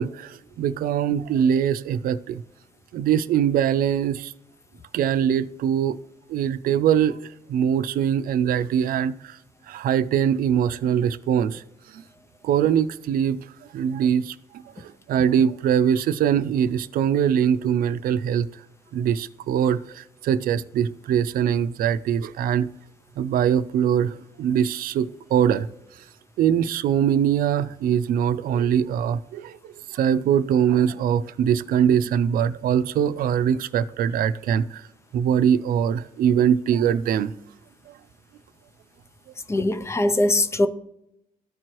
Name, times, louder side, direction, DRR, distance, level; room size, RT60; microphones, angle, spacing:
voice 1, 0.0-2.4 2.9-4.3 4.9-6.0 6.3-7.2 7.5-9.4 9.7-11.6 11.9-12.0 12.4-13.4 13.7-14.4 14.8-18.5 18.9-22.7 23.2-25.7 26.4-34.9 35.1-37.3, right 9 dB, 90° right, 0.4 m, -22 dB
voice 2, 39.5-40.7, left 1 dB, 20° left, 0.4 m, -21 dB
13.5 x 4.6 x 3.0 m
wide cardioid pair, 175°, 14 cm